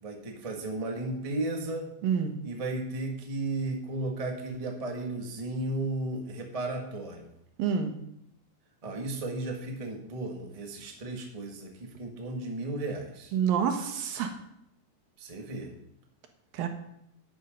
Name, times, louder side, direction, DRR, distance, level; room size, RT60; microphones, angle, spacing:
voice 1, 0.0-1.9 2.4-7.3 8.8-13.3 15.2-15.7, right 2 dB, 20° right, 1 dB, 1.0 m, -34 dB
voice 2, 2.0-2.4 7.6-7.9 13.3-14.3 16.5-16.7, right 7 dB, 85° right, 6 dB, 3.2 m, -27 dB
11.0 x 10.0 x 5.3 m, 0.75 s
omnidirectional pair, 4.0 m